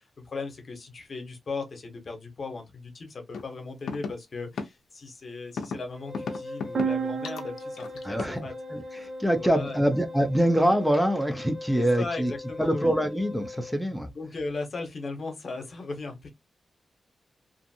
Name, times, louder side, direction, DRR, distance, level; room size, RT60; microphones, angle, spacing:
voice 1, 0.0-8.6 8.9-9.0 9.4-9.8 11.7-12.9 13.6-13.7 14.1-16.3, left 3 dB, 55° left, 0.9 m, -37 dB
sound 1, 3.3-3.4 3.9-4.1 4.6-4.7 5.6-5.8 6.1-6.9 7.2-8.4, left 5 dB, 90° left, 0.5 m, -33 dB
Wind instrument woodwind instrument, 6.0-13.8, left 2 dB, 35° right, 0.9 m, -40 dB
sound 2, 6.8-10.5, right 6 dB, 60° right, 0.5 m, -35 dB
voice 2, 8.0-8.4 8.7-12.3 12.6-14.1, equal, 5° right, 0.5 m, -25 dB
2.6 x 2.5 x 2.6 m
cardioid pair, 85°, 0 cm